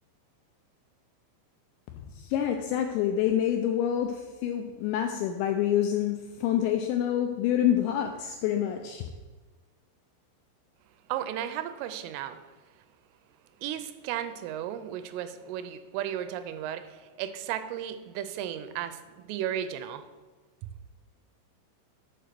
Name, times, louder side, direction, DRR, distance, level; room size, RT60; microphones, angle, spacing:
voice 1, 2.2-9.1, left 10 dB, 85° left, 4 dB, 2.6 m, -27 dB
voice 2, 11.1-12.4 13.6-20.1, right 10 dB, 85° right, 11 dB, 3.1 m, -34 dB
7.6 x 4.5 x 6.7 m, 1.3 s
omnidirectional pair, 5.6 m